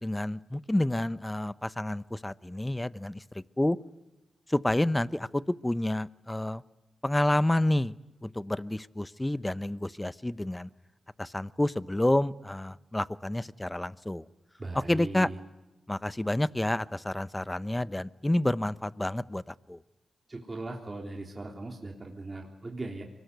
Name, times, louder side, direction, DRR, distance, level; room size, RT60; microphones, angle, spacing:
voice 1, 0.0-3.8 4.5-6.6 7.0-7.9 8.2-10.7 11.2-14.2 14.9-15.3 15.9-19.8, left 1 dB, 15° left, 18 dB, 0.8 m, -29 dB
voice 2, 14.6-15.4 20.3-23.0, right 2 dB, 35° right, 2 dB, 3.4 m, -39 dB
24.0 x 19.5 x 9.5 m, 1.0 s
supercardioid pair, 45°, 0 cm